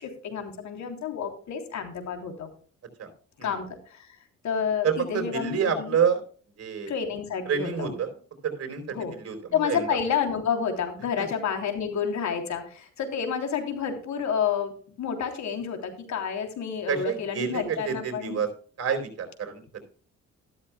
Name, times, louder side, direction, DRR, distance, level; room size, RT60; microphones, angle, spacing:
voice 1, 0.0-2.5 3.4-4.2 4.4-6.0 6.9-7.9 8.9-9.1 9.5-14.7 15.0-18.4, left 7 dB, 70° left, 5 dB, 3.3 m, -30 dB
voice 2, 4.8-6.2 6.6-6.9 7.5-8.1 8.4-9.9 11.2-11.3 16.9-18.5 18.8-19.8, right 7 dB, 55° right, 5 dB, 4.1 m, -28 dB
13.5 x 12.5 x 2.3 m, 0.43 s
cardioid pair, 90°, 30 cm